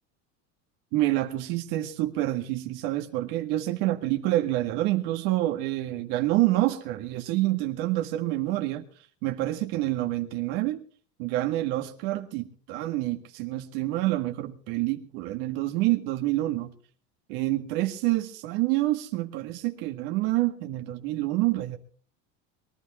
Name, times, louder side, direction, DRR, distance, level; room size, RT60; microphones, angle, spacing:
voice 1, 0.9-8.9 9.2-10.8 11.2-16.7 17.3-21.8, right 16 dB, 70° right, 1.8 m, -27 dB
23.0 x 11.5 x 4.2 m
supercardioid pair, 115°, 37 cm